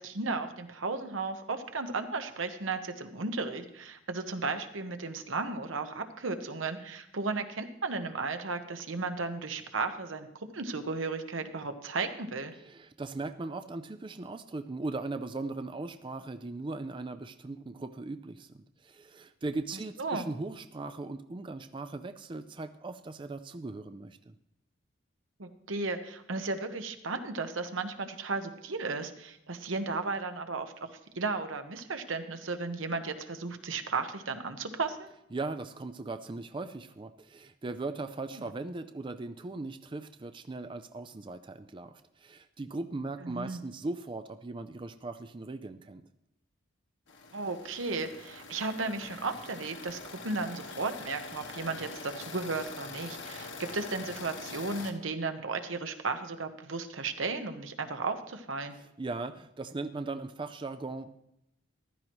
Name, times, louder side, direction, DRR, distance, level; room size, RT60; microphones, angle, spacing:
voice 1, 0.0-12.5 20.0-20.3 25.4-30.7 31.1-35.1 38.3-38.5 43.2-43.6 47.3-58.8, right 3 dB, 80° right, 7 dB, 1.1 m, -35 dB
voice 2, 12.6-24.3 35.3-46.1 58.8-61.1, right 3 dB, 25° right, 9 dB, 0.4 m, -39 dB
sound 1, 47.1-54.9, left 3 dB, 65° left, 1.4 m, -44 dB
14.5 x 12.5 x 3.1 m, 0.81 s
head